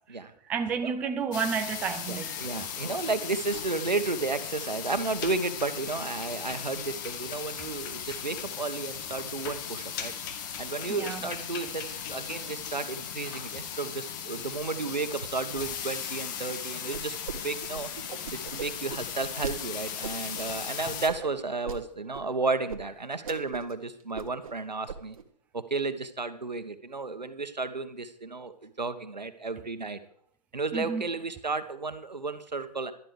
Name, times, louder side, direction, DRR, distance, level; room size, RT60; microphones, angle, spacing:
voice 1, 0.5-2.3 10.9-11.2 30.7-31.0, right 6 dB, 5° right, 0.5 m, -30 dB
sound 1, 1.3-21.1, left 8 dB, 30° left, 1.4 m, -37 dB
voice 2, 2.1-10.1 10.6-17.9 18.3-25.2 25.5-30.0 30.5-32.9, right 3 dB, 85° right, 1.3 m, -33 dB
sound 2, 16.9-17.4 17.6-19.5 20.0-20.4 21.1-21.8 22.1-22.2 22.7-22.8 23.1-23.7 24.0-24.5 24.9-25.2, right 6 dB, 55° right, 1.4 m, -38 dB
12.0 x 11.5 x 4.8 m
figure-of-eight pair, 140°, 21 cm